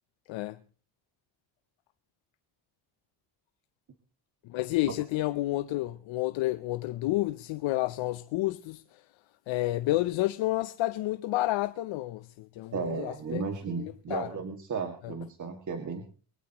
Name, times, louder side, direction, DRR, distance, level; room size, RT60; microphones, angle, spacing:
voice 1, 0.3-0.6 4.4-9.0 9.5-13.4 13.8-14.3 15.0-15.1, left 16 dB, 80° left, 0.7 m, -30 dB
voice 2, 12.7-16.0, right 5 dB, 40° right, 2.2 m, -34 dB
22.5 x 17.5 x 3.0 m
cardioid pair, 115°, 46 cm